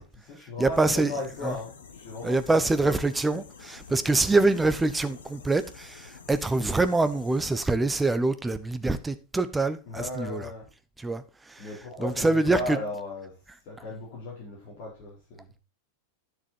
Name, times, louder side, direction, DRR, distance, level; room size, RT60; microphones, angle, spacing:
voice 1, 0.0-3.0 9.9-10.7 11.6-13.4 13.7-15.5, left 2 dB, 45° left, 4.2 m, -36 dB
voice 2, 0.6-1.1 1.4-1.6 2.2-10.5 11.0-11.7 12.0-12.8, right 2 dB, 10° right, 0.9 m, -25 dB
sound 1, 0.7-7.5, left 6 dB, 70° left, 1.3 m, -49 dB
10.0 x 7.0 x 4.3 m
figure-of-eight pair, 90°, 0 cm